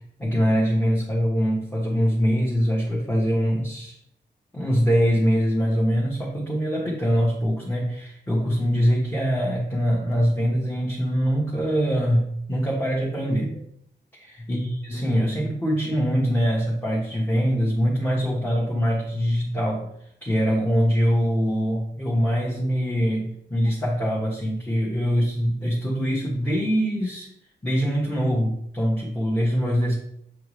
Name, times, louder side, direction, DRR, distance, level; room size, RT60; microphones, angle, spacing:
voice 1, 0.2-4.0 4.5-13.6 14.1-19.9 20.2-27.3 27.6-29.9, equal, 10° left, -5 dB, 1.3 m, -23 dB
7.3 x 4.6 x 3.2 m, 0.73 s
wide cardioid pair, 105°, 18 cm